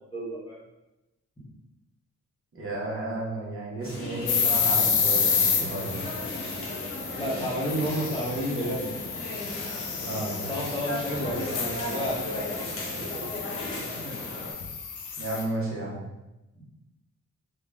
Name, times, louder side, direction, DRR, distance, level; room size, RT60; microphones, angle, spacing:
voice 1, 0.1-0.6 7.2-8.9 10.5-13.3, equal, 15° left, -6 dB, 0.9 m, -31 dB
voice 2, 2.5-5.9 10.0-10.5 11.2-11.3 15.2-16.0, right 2 dB, 45° right, -4 dB, 1.0 m, -33 dB
sound 1, 3.8-14.5, left 1 dB, 50° left, 0.9 m, -36 dB
sound 2, 4.3-15.4, left 6 dB, 85° left, 0.6 m, -30 dB
3.6 x 2.3 x 3.4 m, 0.98 s
wide cardioid pair, 120°, 30 cm